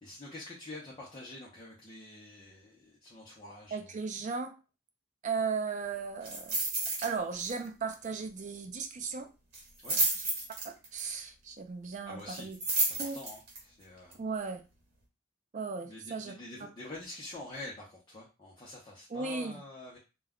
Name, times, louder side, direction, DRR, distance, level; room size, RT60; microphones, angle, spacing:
voice 1, 0.0-3.8 9.8-10.0 12.1-12.5 12.8-14.2 15.9-20.0, left 2 dB, 25° left, -5 dB, 0.6 m, -46 dB
voice 2, 3.7-4.5 5.2-6.6 7.0-9.3 10.6-12.6 13.0-13.2 14.2-14.6 15.5-16.3 19.1-19.6, right 5 dB, 40° right, 6 dB, 0.4 m, -36 dB
sound 1, 6.2-7.1 7.4-7.6 7.9-8.0 9.5-11.0 12.3-13.6 14.1-14.2, right 2 dB, 60° right, 1.2 m, -31 dB
2.2 x 2.1 x 3.5 m, 0.31 s
head